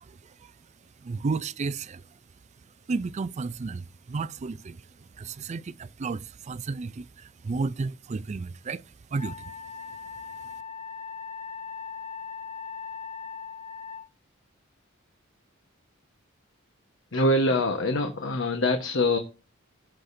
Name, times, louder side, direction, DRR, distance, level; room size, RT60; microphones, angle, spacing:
voice 1, 0.0-0.5 1.0-2.0 2.9-4.8 5.2-8.8 9.1-9.5, right 4 dB, 35° right, 0.4 m, -32 dB
Wind instrument woodwind instrument, 9.2-14.1, left 6 dB, 30° left, 0.7 m, -39 dB
voice 2, 17.1-19.2, left 1 dB, 65° left, 1.2 m, -24 dB
17.0 x 6.4 x 2.6 m
head